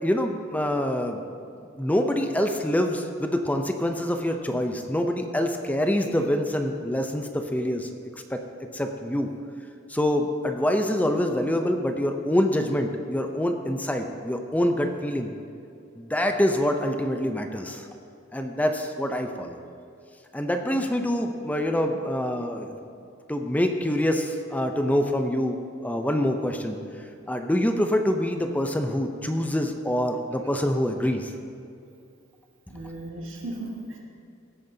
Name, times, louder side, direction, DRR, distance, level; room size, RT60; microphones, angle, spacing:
voice 1, 0.0-1.2 1.8-7.9 8.3-8.4 8.7-9.3 9.9-15.3 16.0-17.9 18.3-19.6 20.3-22.8 23.3-25.6 25.8-26.8 27.3-31.3, left 1 dB, 10° left, 5 dB, 0.5 m, -25 dB
voice 2, 32.7-34.0, right 1 dB, 85° right, -2 dB, 1.8 m, -36 dB
16.0 x 9.0 x 2.7 m, 2.5 s
head